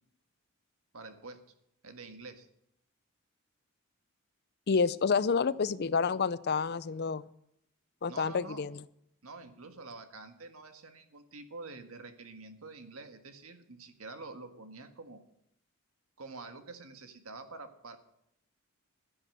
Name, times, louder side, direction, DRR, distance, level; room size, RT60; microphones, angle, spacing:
voice 1, 0.9-1.4 1.8-2.5 8.1-8.7 9.2-15.2 16.2-18.0, right 3 dB, 85° right, 7 dB, 1.7 m, -47 dB
voice 2, 4.7-7.3 8.0-8.8, left 5 dB, 50° left, 18 dB, 0.5 m, -29 dB
12.5 x 10.5 x 7.9 m, 0.76 s
head